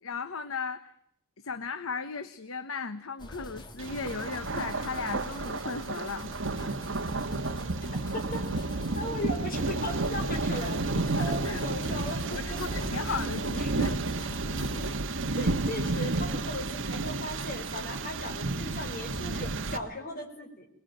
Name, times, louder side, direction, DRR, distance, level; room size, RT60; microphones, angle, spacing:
voice 1, 0.0-0.9 1.4-6.3 11.1-11.6 12.3-14.0 14.5-14.9, left 4 dB, 75° left, 11 dB, 1.0 m, -36 dB
sound 1, 3.2-15.0, left 1 dB, 20° left, 1.8 m, -44 dB
Thunder, 3.8-19.8, right 2 dB, 60° right, 1.4 m, -31 dB
voice 2, 8.9-10.8 11.1-13.2 13.6-13.7 15.4-20.7, left 1 dB, 40° left, 3 dB, 4.7 m, -37 dB
22.0 x 21.5 x 9.1 m, 0.72 s
head